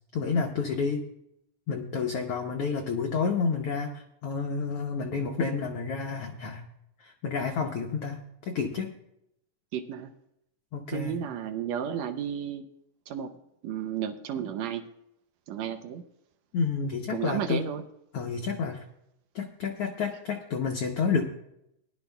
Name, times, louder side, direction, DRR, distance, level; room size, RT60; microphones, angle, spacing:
voice 1, 0.1-1.0 1.7-6.6 7.0-9.0 10.7-11.2 16.5-17.6 18.1-18.8 19.3-21.3, left 5 dB, 75° left, 2 dB, 1.4 m, -30 dB
voice 2, 9.7-10.1 10.9-12.7 13.1-13.3 13.6-14.8 15.5-16.0 17.1-17.8, right 9 dB, 75° right, 8 dB, 1.6 m, -32 dB
20.0 x 11.5 x 2.3 m, 0.81 s
omnidirectional pair, 3.7 m